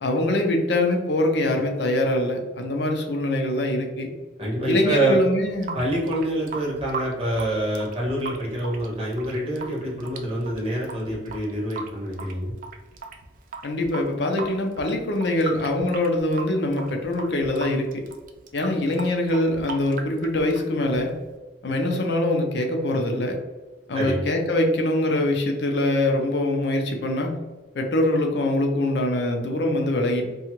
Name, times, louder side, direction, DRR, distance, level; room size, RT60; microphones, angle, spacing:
voice 1, 0.0-4.1 4.7-5.8 13.6-18.0 18.5-21.2 21.6-23.4 23.9-27.4 27.7-30.3, left 1 dB, 70° left, 2 dB, 0.5 m, -23 dB
voice 2, 4.4-5.2 5.7-12.5 23.9-24.2, right 1 dB, 30° right, -5 dB, 1.0 m, -26 dB
Water tap faucet / Sink (filling or washing) / Drip, 5.4-21.3, right 4 dB, 50° right, 0.3 m, -38 dB
2.8 x 2.3 x 2.9 m, 1.2 s
head